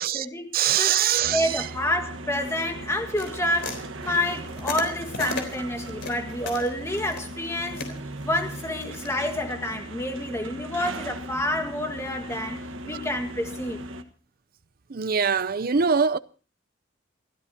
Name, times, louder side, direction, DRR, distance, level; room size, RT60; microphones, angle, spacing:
voice 1, 0.0-1.0 1.3-8.0 8.2-12.6 12.8-13.8, left 1 dB, 15° left, 1.9 m, -29 dB
voice 2, 0.5-1.7 14.9-16.2, right 7 dB, 50° right, 0.6 m, -23 dB
sound 1, 1.2-14.0, right 1 dB, 90° right, 1.4 m, -38 dB
sound 2, 3.2-9.1, left 3 dB, 60° left, 3.6 m, -36 dB
28.5 x 13.5 x 2.8 m
head